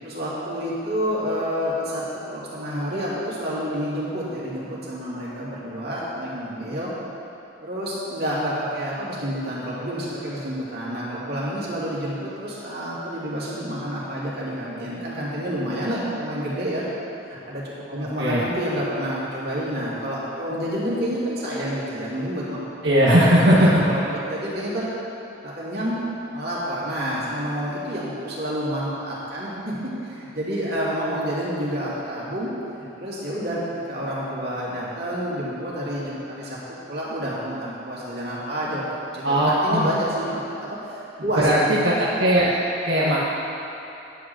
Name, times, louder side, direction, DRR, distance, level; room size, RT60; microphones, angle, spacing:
voice 1, 0.0-6.9 7.6-16.8 17.3-17.6 17.9-22.6 22.9-24.9 25.4-26.0 26.3-32.5 32.8-33.6 33.9-36.6 36.9-38.9 39.1-41.8, equal, 55° right, -8 dB, 2.7 m, -29 dB
voice 2, 22.8-23.5 39.2-39.9 41.4-42.6 42.8-43.2, equal, 80° right, -7 dB, 1.3 m, -18 dB
10.5 x 5.0 x 7.9 m, 2.8 s
head